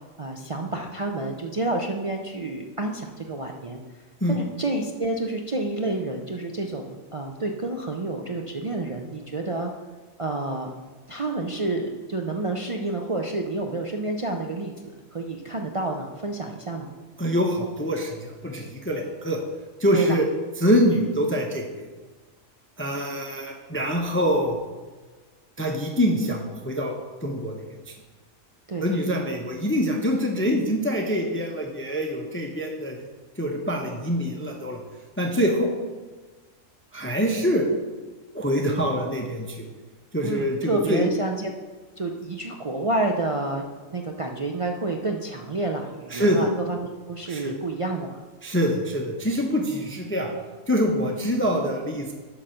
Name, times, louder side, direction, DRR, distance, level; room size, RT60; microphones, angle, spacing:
voice 1, 0.0-3.8 4.3-9.7 10.2-10.7 11.1-14.7 15.1-16.9 19.9-20.2 28.7-28.8 40.2-41.5 42.0-43.6 43.9-48.1, right 2 dB, 60° right, 1 dB, 0.3 m, -29 dB
voice 2, 17.2-19.4 19.8-20.3 20.6-21.9 22.8-24.6 25.6-26.9 27.2-27.6 28.8-33.0 33.4-34.8 35.2-35.7 36.9-37.6 38.3-39.6 40.1-41.1 46.1-46.5 47.3-47.5 48.4-50.3 50.7-52.1, equal, 10° left, 1 dB, 0.6 m, -25 dB
9.9 x 4.0 x 6.4 m, 1.3 s
omnidirectional pair, 1.4 m